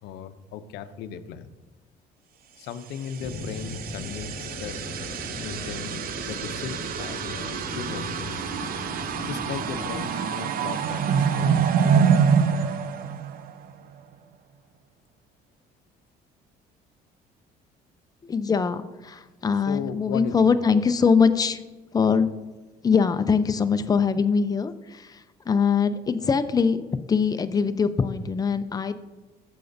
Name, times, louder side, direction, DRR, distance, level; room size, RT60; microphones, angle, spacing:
voice 1, 0.0-1.5 2.6-4.3 4.6-4.9 5.4-8.5 9.3-12.3 19.7-20.6, left 7 dB, 85° left, 11 dB, 0.6 m, -37 dB
sound 1, 3.1-13.8, right 7 dB, 60° right, 0.6 m, -26 dB
sound 2, 3.2-10.1, left 3 dB, 50° left, 1.6 m, -38 dB
voice 2, 18.2-21.6 21.9-22.3 22.8-26.8 27.1-29.0, left 5 dB, 20° left, 10 dB, 0.5 m, -22 dB
14.5 x 6.9 x 2.6 m, 1.2 s
cardioid pair, 110°, 17 cm